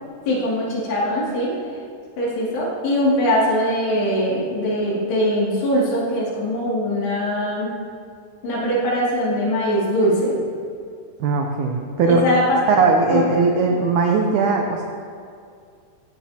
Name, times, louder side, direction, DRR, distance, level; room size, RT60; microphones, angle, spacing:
voice 1, 0.3-1.5 2.2-7.7 8.4-10.4 12.0-12.6 13.1-13.3, equal, 85° left, -6 dB, 4.7 m, -21 dB
voice 2, 11.2-12.2 12.7-14.8, right 4 dB, 85° right, 1 dB, 1.7 m, -19 dB
15.5 x 14.5 x 2.9 m, 2.3 s
omnidirectional pair, 4.7 m